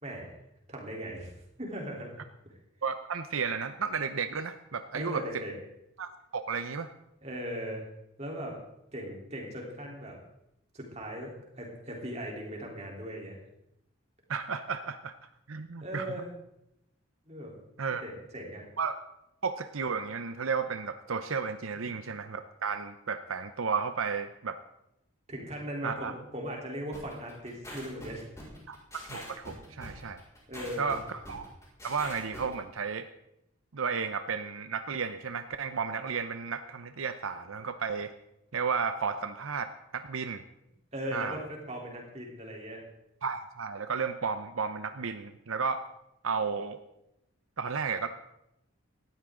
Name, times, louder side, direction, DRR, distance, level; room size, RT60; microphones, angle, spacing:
voice 1, 0.7-1.3 1.6-2.2 4.9-5.5 7.2-7.8 8.2-8.6 8.9-10.2 10.7-13.4 15.8-16.3 17.3-17.5 18.0-18.6 25.3-28.2 28.5-28.6 29.8-30.0 30.5-31.0 40.9-42.8, equal, 30° right, -1 dB, 3.7 m, -38 dB
voice 2, 2.8-5.4 6.0-6.9 14.3-15.1 15.5-16.1 17.8-18.0 18.8-19.0 19.4-24.6 25.8-26.1 28.7-28.8 29.1-30.2 30.8-31.5 31.8-33.1 33.7-38.1 38.5-40.4 41.1-41.4 43.2-45.8 46.2-46.8 47.6-48.1, right 5 dB, 80° right, 9 dB, 0.8 m, -33 dB
sound 1, 26.9-32.5, equal, 15° left, 5.1 m, -44 dB
18.0 x 13.5 x 3.8 m, 0.83 s
head